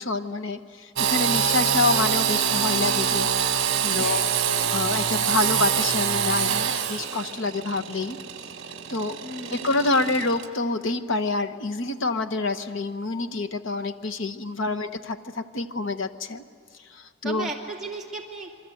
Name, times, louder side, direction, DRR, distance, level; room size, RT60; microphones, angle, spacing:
voice 1, 0.0-4.2 4.7-8.2 8.9-9.2 9.5-16.4 16.9-17.5, left 3 dB, 60° left, 10 dB, 1.0 m, -27 dB
Engine / Sawing, 1.0-10.5, right 8 dB, 55° right, 1.2 m, -25 dB
voice 2, 3.9-4.9 9.2-9.6 14.7-14.9 17.2-18.5, right 2 dB, ahead, -4 dB, 2.4 m, -37 dB
26.5 x 23.5 x 7.8 m, 2.2 s
head